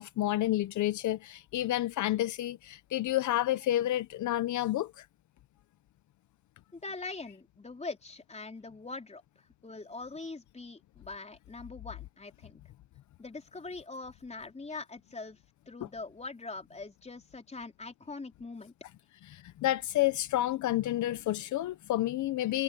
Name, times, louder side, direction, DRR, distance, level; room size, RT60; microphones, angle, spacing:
voice 1, 0.0-5.1 19.3-22.6, left 14 dB, 75° left, 0.9 m, -30 dB
voice 2, 6.7-12.6 13.2-15.4 15.7-18.7, left 3 dB, 20° left, 4.2 m, -43 dB
cardioid pair, 90°, 30 cm